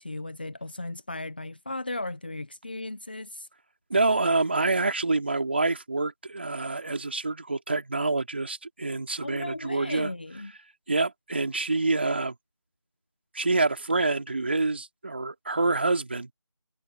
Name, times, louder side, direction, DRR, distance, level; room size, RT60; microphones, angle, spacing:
voice 1, 0.0-3.5 9.2-10.5, left 2 dB, 20° left, 1.4 m, -36 dB
voice 2, 3.9-10.1 10.9-12.3 13.3-16.3, right 3 dB, 25° right, 3.4 m, -27 dB
figure-of-eight pair, 175°, 14 cm